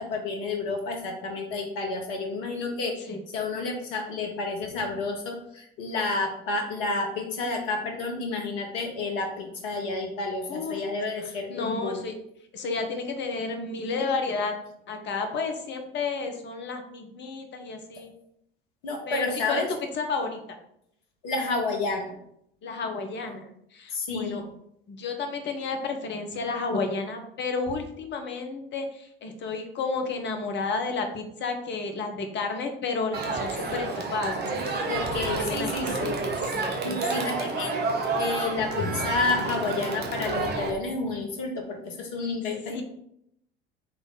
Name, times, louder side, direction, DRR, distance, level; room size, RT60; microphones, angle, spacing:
voice 1, 0.0-12.0 18.8-19.7 21.2-22.1 23.9-24.4 34.8-36.2 36.8-37.8 38.2-42.8, left 3 dB, 60° left, 1 dB, 1.1 m, -30 dB
voice 2, 11.5-12.1 12.5-14.5 14.9-18.1 19.1-19.6 19.9-20.4 22.6-23.5 23.7-24.4 24.9-34.4 35.3-36.0 36.5-37.2 42.7-42.8, left 4 dB, 35° left, 5 dB, 0.9 m, -31 dB
Crowd, 33.1-40.7, right 3 dB, 35° right, 1.0 m, -30 dB
3.9 x 3.3 x 4.0 m, 0.75 s
figure-of-eight pair, 65°, 30 cm